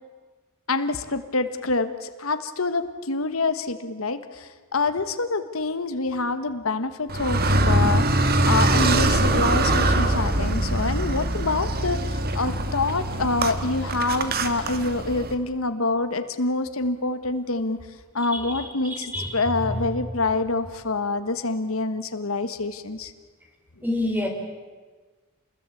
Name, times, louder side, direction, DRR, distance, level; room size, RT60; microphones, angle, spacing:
voice 1, 0.7-17.8 18.1-23.1, left 3 dB, 75° left, 10 dB, 1.4 m, -26 dB
Car, 7.1-15.3, right 1 dB, 50° right, 1.8 m, -23 dB
voice 2, 18.3-19.9 23.8-24.3, left 1 dB, 10° right, 3 dB, 4.5 m, -29 dB
28.0 x 20.5 x 8.5 m, 1.4 s
head